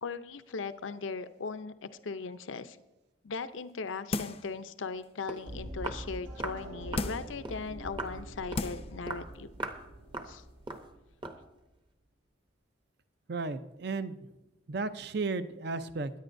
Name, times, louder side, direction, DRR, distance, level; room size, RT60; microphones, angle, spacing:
voice 1, 0.0-2.8 3.2-9.5 10.3-10.4, left 4 dB, 80° left, 11 dB, 0.6 m, -38 dB
sound 1, 4.1-4.6 5.0-5.1 6.9-7.4 8.1-8.2 8.5-9.0 9.3-9.4, left 3 dB, 30° left, 0.5 m, -34 dB
Walk footsteps, 5.0-5.1 5.3-5.5 5.8-6.1 6.4-6.6 6.9-7.1 7.4-7.6 8.0-8.2 8.5-8.7 9.1-9.3 9.6-9.8 10.1-10.4 10.7-10.9 11.2-11.4, right 2 dB, 25° right, 0.8 m, -39 dB
sound 2, 5.4-11.4, right 1 dB, 75° right, 3.7 m, -44 dB
voice 2, 13.3-14.3 14.7-16.1, right 3 dB, 55° right, 12 dB, 0.6 m, -34 dB
22.0 x 10.0 x 2.6 m, 1.0 s
head